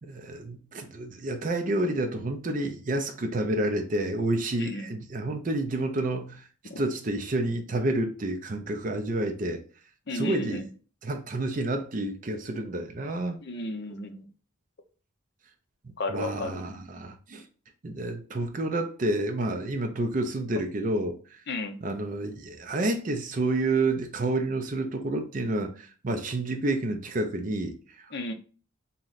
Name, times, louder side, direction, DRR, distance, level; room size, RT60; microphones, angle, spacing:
voice 1, 0.0-6.5 6.8-9.6 10.1-10.7 11.0-13.4 16.1-17.4 17.8-21.4 21.8-28.0, right 2 dB, 35° right, 0.5 m, -29 dB
voice 2, 4.6-4.9 6.7-6.8 10.1-10.6 13.4-14.2 16.0-16.6 21.5-21.8 28.1-28.3, left 2 dB, 50° left, 0.5 m, -33 dB
3.1 x 2.8 x 3.9 m
head